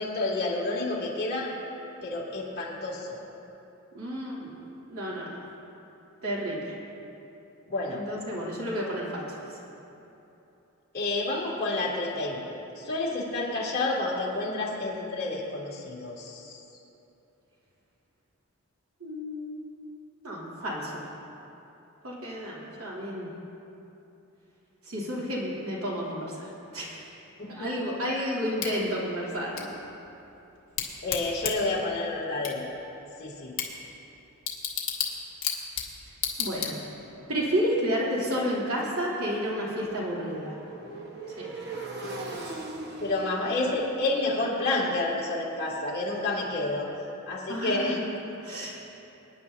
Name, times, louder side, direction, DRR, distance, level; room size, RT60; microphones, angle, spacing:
voice 1, 0.0-1.5 2.0-3.2 7.7-8.0 10.9-12.4 12.8-16.6 27.4-27.7 31.0-32.6 33.2-33.5 42.2-42.3 43.0-46.9 47.3-48.0, left 2 dB, 45° left, -6 dB, 2.6 m, -29 dB
voice 2, 3.9-4.5 4.9-5.4 6.2-6.7 7.9-9.3 19.0-19.6 20.2-21.0 22.0-23.3 24.8-27.1 27.5-29.7 36.4-36.7 37.3-40.5 41.3-41.6 43.4-43.5 47.5-48.1 48.4-48.9, equal, 75° right, -6 dB, 3.0 m, -31 dB
Bicycle / Tick, 28.6-37.2, left 7 dB, 60° left, 1.6 m, -35 dB
Motorcycle, 36.7-46.5, right 2 dB, 50° right, 1.1 m, -42 dB
25.0 x 10.0 x 2.8 m, 3.0 s
head